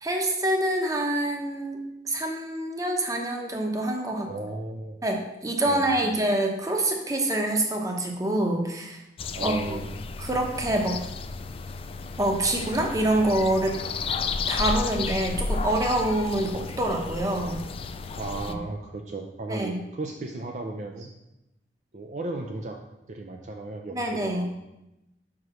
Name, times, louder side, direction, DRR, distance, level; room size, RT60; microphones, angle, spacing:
voice 1, 0.0-4.3 5.0-9.0 9.4-9.8 10.2-11.0 12.2-13.8 14.5-17.6 18.5-18.6 19.5-19.8 23.9-24.5, right 1 dB, 20° right, 2 dB, 0.9 m, -26 dB
voice 2, 4.3-5.0 5.7-6.1 9.3-9.9 18.2-21.1 21.9-22.8 23.1-24.5, right 2 dB, 45° right, 2 dB, 0.5 m, -35 dB
sound 1, 9.2-18.5, left 4 dB, 35° left, 0.3 m, -32 dB
5.4 x 4.8 x 6.2 m, 0.93 s
head